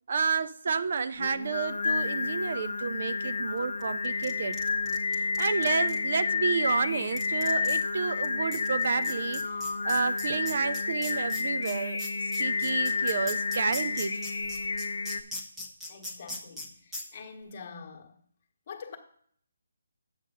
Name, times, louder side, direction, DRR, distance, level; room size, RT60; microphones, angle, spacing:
voice 1, 0.1-4.6 5.1-9.4 9.8-12.0 12.4-14.2, right 5 dB, 50° right, 12 dB, 0.5 m, -30 dB
Singing, 1.2-15.2, left 4 dB, 65° left, 0.7 m, -30 dB
sound 1, 4.0-6.0 6.7-6.8 7.2-7.8 8.2-8.3 8.5-16.7 16.9-17.0, left 1 dB, 5° right, 1.0 m, -39 dB
voice 2, 15.9-18.1 18.7-19.0, left 5 dB, 35° left, 1 dB, 1.4 m, -45 dB
8.1 x 6.4 x 5.3 m, 0.63 s
hypercardioid pair, 165°, 0 cm